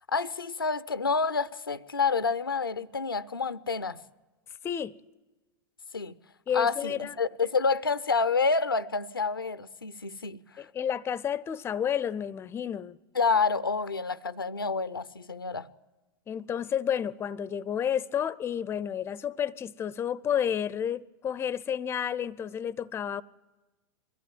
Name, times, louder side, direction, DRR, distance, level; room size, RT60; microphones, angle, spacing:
voice 1, 0.1-4.0 5.9-6.1 6.5-10.7 13.1-15.7, left 4 dB, 90° left, 0.6 m, -28 dB
voice 2, 4.6-5.0 6.5-7.1 10.6-13.0 16.3-23.2, left 9 dB, 20° left, 0.6 m, -31 dB
22.0 x 14.5 x 8.9 m
figure-of-eight pair, 95°, 12 cm